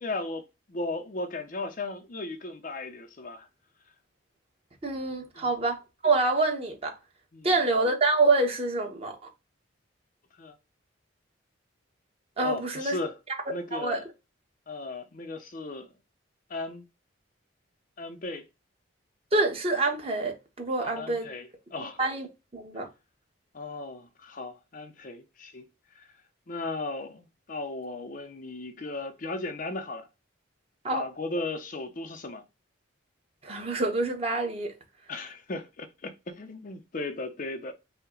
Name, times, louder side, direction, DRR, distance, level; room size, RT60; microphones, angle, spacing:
voice 1, 0.0-3.5 5.3-5.5 7.3-7.5 10.3-10.6 12.4-13.2 13.5-14.0 14.7-15.9 16.5-16.9 18.0-18.5 20.8-22.0 23.5-26.1 26.5-30.1 30.9-32.4 35.1-37.7, left 2 dB, 40° left, 0.5 m, -36 dB
voice 2, 4.8-7.0 7.4-9.2 12.4-13.0 13.7-14.0 19.3-21.3 22.0-22.3 22.5-22.9 30.8-31.0 33.4-34.7, right 3 dB, 30° right, 1.0 m, -26 dB
5.5 x 2.1 x 3.7 m
head